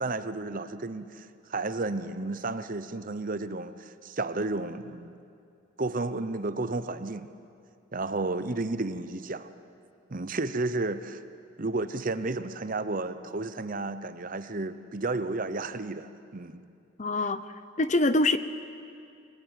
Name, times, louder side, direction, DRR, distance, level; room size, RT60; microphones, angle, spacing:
voice 1, 0.0-5.2 5.8-7.3 7.9-9.5 10.1-11.2 11.6-16.6, right 2 dB, 40° right, 11 dB, 0.8 m, -32 dB
voice 2, 17.0-17.5 17.8-18.4, left 2 dB, 35° left, 12 dB, 0.7 m, -24 dB
23.0 x 20.5 x 9.0 m, 2.4 s
head